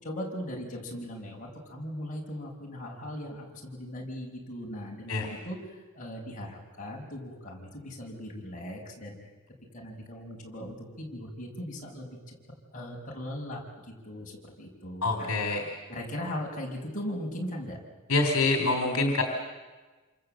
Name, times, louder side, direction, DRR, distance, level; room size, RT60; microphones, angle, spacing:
voice 1, 0.0-9.2 9.7-12.3 12.7-13.6 14.0-15.3 15.9-17.8, equal, 35° left, -1 dB, 5.7 m, -39 dB
voice 2, 15.0-15.7 18.1-19.2, left 3 dB, 65° left, 5 dB, 3.6 m, -26 dB
27.5 x 27.0 x 7.8 m, 1.3 s
head